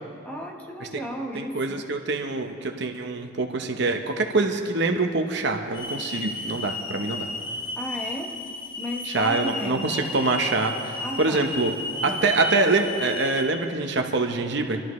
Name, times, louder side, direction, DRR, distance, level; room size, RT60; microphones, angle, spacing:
voice 1, 0.2-1.8 7.8-8.3 8.8-10.2 11.0-11.5 12.0-12.3, equal, 10° left, 0 dB, 1.1 m, -34 dB
voice 2, 1.3-7.3 9.1-11.7 12.0-14.8, right 3 dB, 55° right, 4 dB, 0.9 m, -25 dB
Hiss / Alarm, 5.7-13.4, left 2 dB, 75° left, 2.6 m, -33 dB
26.0 x 13.0 x 3.2 m, 2.4 s
head